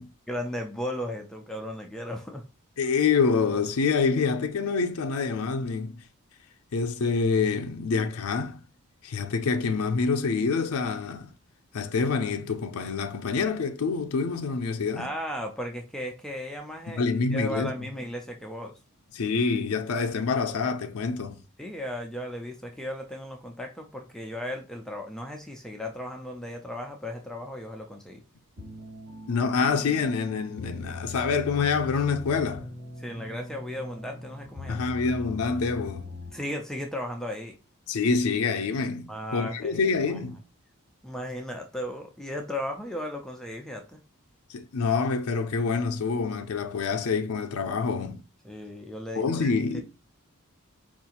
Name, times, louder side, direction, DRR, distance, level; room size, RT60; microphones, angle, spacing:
voice 1, 0.3-2.4 15.0-17.0 17.3-18.8 21.6-28.2 33.0-34.9 36.3-37.6 39.1-40.2 41.0-44.0 48.4-49.8, equal, 5° left, 0.4 m, -36 dB
voice 2, 2.8-6.0 6.7-8.6 9.0-11.3 11.7-15.1 16.9-17.7 19.1-21.4 29.3-32.7 34.7-36.1 37.9-40.4 44.5-48.2 49.2-49.8, left 5 dB, 75° left, 0.5 m, -26 dB
sound 1, 28.6-36.7, left 2 dB, 75° right, 1.9 m, -41 dB
4.6 x 2.4 x 2.8 m
head